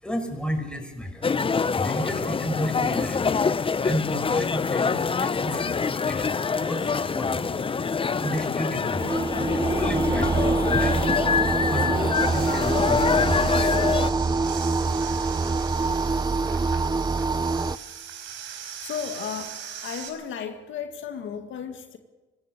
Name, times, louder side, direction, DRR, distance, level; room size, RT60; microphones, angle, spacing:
voice 1, 0.0-1.2 1.7-6.3 6.6-7.5 8.2-9.1 9.5-11.3 11.7-13.7, equal, 5° left, 5 dB, 5.8 m, -33 dB
sound 1, 1.2-14.1, left 5 dB, 25° left, 0.7 m, -25 dB
sound 2, 9.0-17.8, right 3 dB, 20° right, 0.7 m, -25 dB
sound 3, 12.1-20.1, right 8 dB, 90° right, 4.8 m, -40 dB
voice 2, 18.8-22.0, left 7 dB, 75° left, 5 dB, 2.1 m, -34 dB
25.0 x 17.0 x 6.7 m, 1.2 s
cardioid pair, 90°, 20 cm